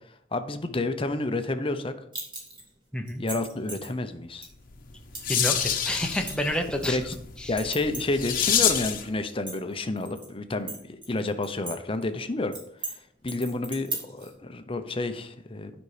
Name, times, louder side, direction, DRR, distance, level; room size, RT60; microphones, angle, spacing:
voice 1, 0.3-1.9 3.2-4.5 6.7-7.1 7.5-12.5 12.8-15.7, left 2 dB, 30° left, 9 dB, 0.7 m, -30 dB
sound 1, 2.1-2.7 3.1-3.9 4.4-4.5 5.1-5.4 5.7-7.2 7.6-8.6 8.8-8.9 9.3-10.3 10.7-11.7 12.0-12.1 12.5-12.9 13.3-14.3, right 2 dB, 25° right, 2.6 m, -37 dB
voice 2, 2.9-3.2 5.3-7.0 7.4-7.5, left 1 dB, 5° left, 3 dB, 0.9 m, -29 dB
sound 2, 4.7-9.1, left 8 dB, 50° left, 1.0 m, -28 dB
9.5 x 5.4 x 4.9 m, 0.72 s
head